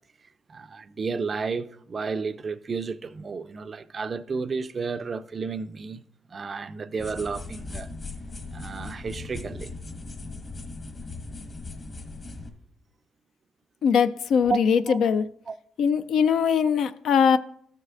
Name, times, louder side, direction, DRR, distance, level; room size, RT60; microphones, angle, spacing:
voice 1, 0.5-6.0 6.3-7.9 8.5-9.7 14.5-14.6 14.9-15.0 15.5-15.6, right 5 dB, 40° right, 0.4 m, -32 dB
sound 1, 7.0-12.5, left 3 dB, 35° left, 1.3 m, -38 dB
voice 2, 13.8-15.3 15.8-17.4, left 7 dB, 70° left, 0.3 m, -21 dB
14.0 x 6.4 x 2.5 m
cardioid pair, 90°, 0 cm